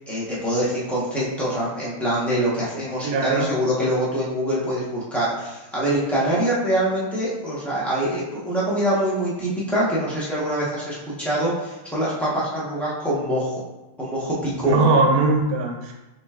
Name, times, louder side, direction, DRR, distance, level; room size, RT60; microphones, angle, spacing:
voice 1, 0.1-13.5 14.0-14.8, right 1 dB, ahead, -8 dB, 0.6 m, -24 dB
voice 2, 3.0-3.5 14.6-15.9, right 3 dB, 85° right, 1 dB, 1.6 m, -20 dB
6.6 x 3.0 x 2.4 m, 1.1 s
omnidirectional pair, 2.2 m